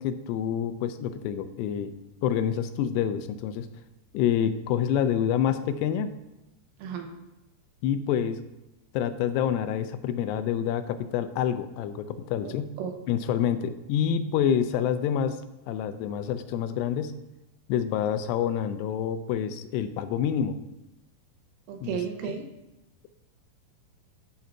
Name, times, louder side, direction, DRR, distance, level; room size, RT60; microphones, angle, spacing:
voice 1, 0.0-1.9 2.2-3.7 4.1-6.1 7.8-8.4 8.9-12.7 13.1-15.4 15.7-17.2 17.7-20.6 21.8-21.9, left 9 dB, 90° left, 11 dB, 2.7 m, -27 dB
voice 2, 6.8-7.2 12.4-12.9 21.7-22.5, right 7 dB, 80° right, 4 dB, 2.6 m, -34 dB
11.5 x 3.9 x 4.4 m, 1.0 s
omnidirectional pair, 4.7 m